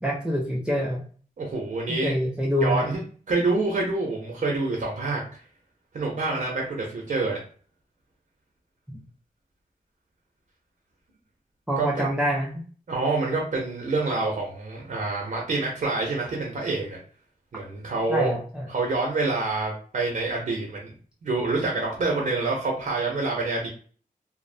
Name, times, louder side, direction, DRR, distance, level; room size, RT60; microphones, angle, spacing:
voice 1, 0.0-1.0 1.9-2.9 11.7-12.6 18.1-18.7, equal, 5° right, -2 dB, 0.4 m, -26 dB
voice 2, 1.4-2.1 2.6-3.0 3.3-5.2 5.9-7.4 11.8-12.0 12.9-17.0 17.5-18.3 18.7-20.9 21.2-23.7, right 3 dB, 60° right, -1 dB, 0.6 m, -27 dB
2.5 x 2.0 x 2.5 m, 0.43 s
wide cardioid pair, 155°, 15 cm